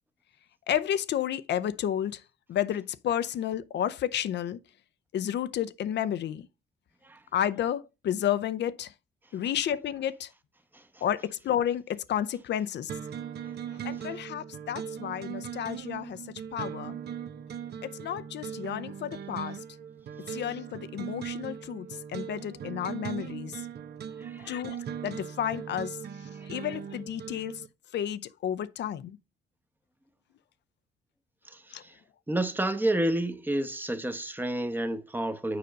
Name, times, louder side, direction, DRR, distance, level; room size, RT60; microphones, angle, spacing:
voice 1, 0.7-2.2 2.5-4.6 5.1-6.5 7.3-8.9 9.3-10.3 11.0-12.9 13.8-16.2 16.5-17.0 17.8-19.6 20.3-23.6 24.4-26.0 26.5-27.5 27.9-29.2 31.7-31.8, left 10 dB, 60° left, 0.6 m, -31 dB
sound 1, 12.9-27.7, right 8 dB, 55° right, 0.7 m, -39 dB
voice 2, 24.2-24.6 26.4-26.5 31.5-31.9 32.3-35.6, right 1 dB, 10° right, 0.9 m, -30 dB
6.9 x 5.1 x 5.2 m
cardioid pair, 90°, 20 cm